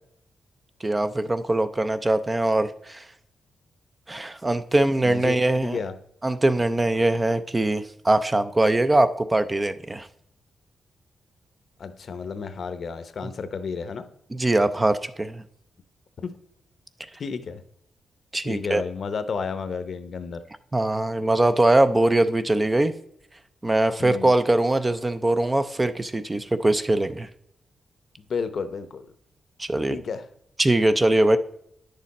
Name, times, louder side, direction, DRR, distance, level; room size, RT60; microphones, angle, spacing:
voice 1, 0.8-3.0 4.1-5.8 6.2-10.1 14.3-15.4 18.3-18.8 20.7-22.9 23.6-27.3 29.6-30.0 30.6-31.4, right 2 dB, 20° right, 11 dB, 0.5 m, -22 dB
voice 2, 5.0-5.9 11.8-14.1 16.2-16.4 17.2-17.6 18.4-20.4 24.0-24.3 28.3-29.1 29.9-30.3, left 5 dB, 55° left, 11 dB, 0.8 m, -32 dB
9.8 x 6.7 x 4.2 m, 0.74 s
wide cardioid pair, 120°, 0 cm